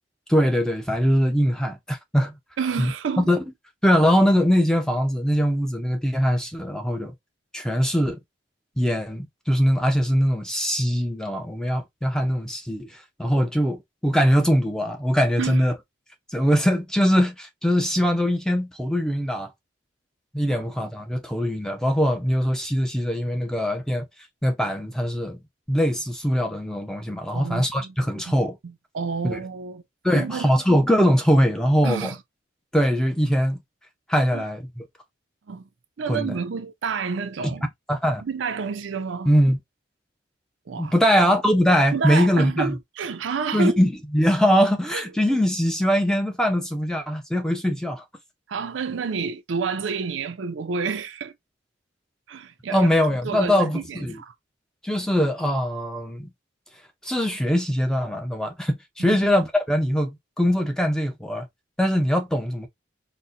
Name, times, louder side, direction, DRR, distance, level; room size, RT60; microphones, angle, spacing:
voice 1, 0.3-2.3 2.8-2.9 3.2-3.4 3.8-7.1 7.5-8.2 8.8-15.7 16.3-19.5 20.3-24.0 24.4-25.4 25.7-28.6 29.2-29.4 30.0-32.1 32.7-33.6 34.1-34.8 36.1-36.3 37.9-38.2 39.3-39.6 40.8-42.7 43.5-48.0 52.7-54.2 54.8-56.3 57.0-61.5 61.8-62.7, equal, 5° left, 0.5 m, -22 dB
voice 2, 2.6-3.3 15.4-15.7 27.3-28.3 28.6-29.8 30.1-30.5 31.8-32.2 34.3-34.4 35.5-35.7 36.0-37.6 38.2-39.3 40.7-40.9 41.9-43.8 44.9-45.0 48.5-51.3 52.3-54.3 59.0-59.2, right 5 dB, 80° right, 0.5 m, -29 dB
4.0 x 2.1 x 2.5 m
head